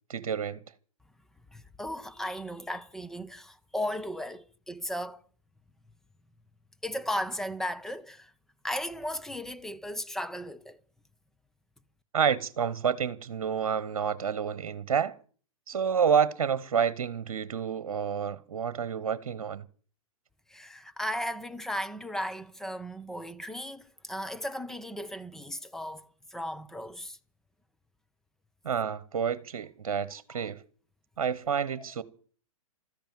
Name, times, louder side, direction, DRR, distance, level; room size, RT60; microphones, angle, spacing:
voice 1, 0.1-0.6 12.1-15.2 15.7-19.6 28.6-30.6 31.2-32.0, right 7 dB, 65° right, 1.2 m, -29 dB
voice 2, 1.5-5.2 6.8-8.3 8.6-10.8 20.5-27.2 30.3-30.4 31.7-31.9, equal, ahead, 0.9 m, -36 dB
14.0 x 10.0 x 9.2 m
figure-of-eight pair, 115°, 18 cm